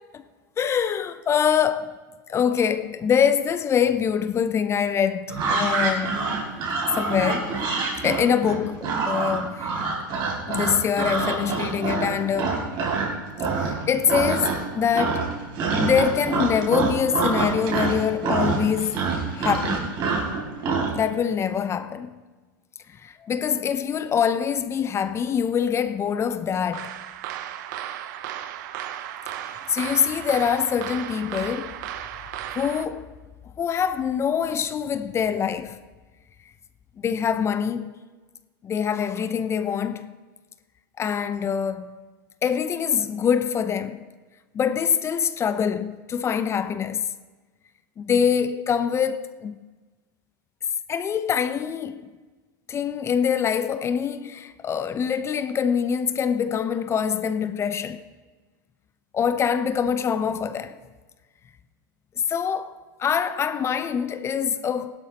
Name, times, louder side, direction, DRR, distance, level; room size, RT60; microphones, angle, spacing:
voice 1, 0.6-1.9 2.3-6.2 6.9-7.6 8.0-10.0 10.5-12.7 13.6-15.4 15.8-19.1 19.4-19.9 20.9-22.2 23.0-27.0 29.7-31.7 32.5-33.1 33.6-35.8 37.0-37.9 38.6-40.1 41.0-42.0 42.4-44.0 44.5-47.1 48.0-49.6 50.9-52.1 52.7-58.0 59.1-60.8 62.3-65.0, left 7 dB, 25° left, 0.5 m, -24 dB
sound 1, 5.3-13.1 13.4-13.8 14.1-14.7 14.9-20.9, right 4 dB, 45° right, 3.3 m, -26 dB
sound 2, 26.7-32.8, right 11 dB, 60° right, 0.8 m, -35 dB
16.5 x 12.0 x 2.9 m
hypercardioid pair, 105°, 11 cm